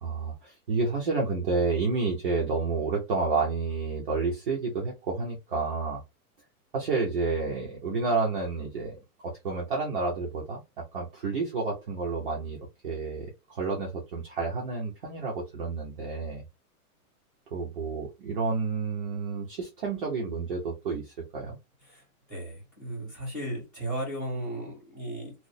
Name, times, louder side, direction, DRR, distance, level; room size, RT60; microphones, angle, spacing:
voice 1, 0.0-6.0 6.7-10.6 10.9-12.6 12.8-16.4 17.5-21.6, right 4 dB, 35° right, -2 dB, 0.7 m, -30 dB
voice 2, 22.3-25.3, right 1 dB, ahead, -7 dB, 2.0 m, -35 dB
3.0 x 2.1 x 3.8 m, 0.24 s
supercardioid pair, 180°, 45 cm